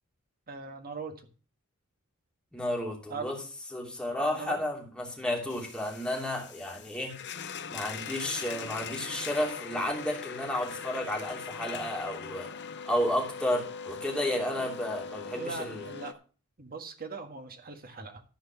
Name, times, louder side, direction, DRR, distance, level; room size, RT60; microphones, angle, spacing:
voice 1, 0.5-1.1 3.1-3.4 4.3-4.6 14.6-14.7 15.2-16.1 16.6-18.2, right 4 dB, 45° right, 5 dB, 1.7 m, -40 dB
voice 2, 2.5-3.4 3.7-7.1 7.7-12.5 12.9-15.9, left 1 dB, 5° left, -1 dB, 2.9 m, -32 dB
sound 1, 5.5-16.1, left 6 dB, 55° left, 0.8 m, -41 dB
13.5 x 5.0 x 6.1 m, 0.37 s
head